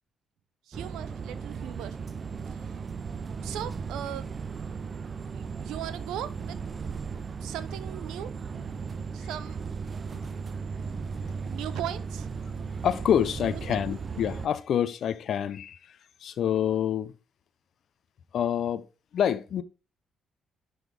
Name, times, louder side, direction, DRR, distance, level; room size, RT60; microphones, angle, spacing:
sound 1, 0.7-14.5, right 5 dB, 40° right, 0.5 m, -36 dB
voice 1, 0.7-2.0 2.5-2.6 3.4-4.3 5.3-6.6 7.4-8.9 9.1-9.6 11.5-12.3 13.4-13.8, right 11 dB, 90° right, 0.6 m, -38 dB
voice 2, 12.8-17.1 18.3-18.9 19.1-19.6, left 9 dB, 65° left, 0.5 m, -27 dB
9.3 x 3.9 x 3.3 m
cardioid pair, 90°, 0 cm